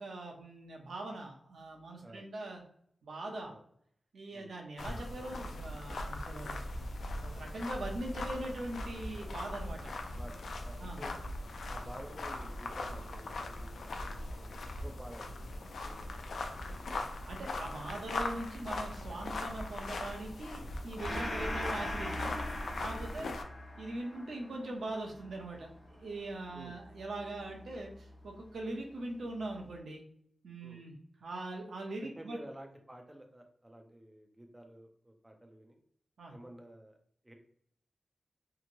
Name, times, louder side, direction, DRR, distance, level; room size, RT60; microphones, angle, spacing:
voice 1, 0.0-2.6 3.0-3.5 4.1-6.7 7.2-9.9 10.8-11.0 17.3-22.4 22.8-23.3 23.8-30.0 30.4-30.9 31.2-32.4 36.2-36.3, right 2 dB, 85° right, 1 dB, 0.7 m, -41 dB
sound 1, 4.8-23.4, left 2 dB, 80° left, 0.3 m, -40 dB
voice 2, 8.2-8.5 10.1-11.2 11.7-14.5 14.8-16.2 23.1-23.4 26.5-26.8 30.6-30.8 32.0-35.8 36.3-37.0 37.2-37.3, right 1 dB, 10° right, 3 dB, 0.4 m, -51 dB
Gong, 21.0-27.9, left 1 dB, 60° left, 1.0 m, -41 dB
2.9 x 2.8 x 2.5 m, 0.67 s
wide cardioid pair, 165°, 0 cm